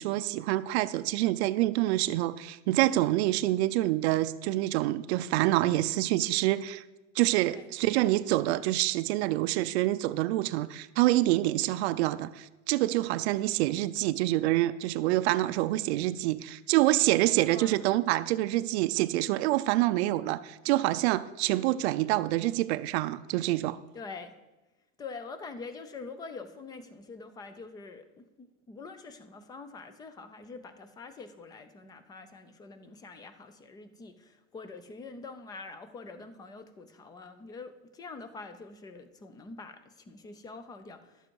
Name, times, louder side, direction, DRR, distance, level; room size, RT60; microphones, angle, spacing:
voice 1, 0.0-6.8 7.2-23.8, right 16 dB, 55° right, 0.5 m, -26 dB
voice 2, 17.2-17.8 23.9-24.3 25.0-41.3, left 4 dB, 10° left, 0.4 m, -45 dB
11.5 x 7.5 x 4.6 m
supercardioid pair, 140°, 40 cm